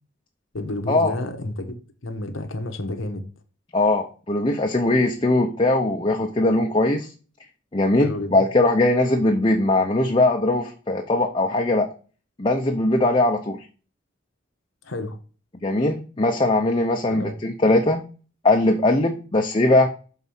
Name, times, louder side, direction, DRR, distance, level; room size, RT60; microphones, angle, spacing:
voice 1, 0.5-1.8 2.0-3.3 8.0-8.4 14.8-15.2 17.1-17.3, left 1 dB, 85° left, 1.1 m, -30 dB
voice 2, 3.7-7.1 7.7-11.9 12.4-13.6 15.5-18.0 18.4-19.9, left 2 dB, 25° left, 0.7 m, -20 dB
6.2 x 4.1 x 5.5 m
head